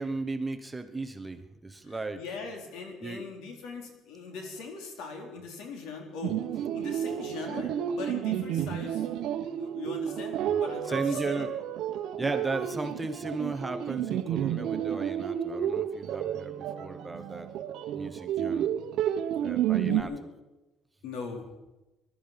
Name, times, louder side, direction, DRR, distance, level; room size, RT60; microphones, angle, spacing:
voice 1, 0.0-2.2 3.0-3.2 8.6-8.8 10.9-11.5 12.1-17.5 17.9-18.7 19.4-20.1, right 3 dB, 10° right, 6 dB, 1.0 m, -35 dB
voice 2, 1.8-6.4 6.7-9.1 9.4-11.5 19.9-20.2 21.0-21.4, left 4 dB, 85° left, 3 dB, 3.5 m, -40 dB
sound 1, 6.2-20.0, right 10 dB, 65° right, 1.0 m, -31 dB
20.5 x 12.5 x 5.8 m, 1.0 s
cardioid pair, 155°, 0 cm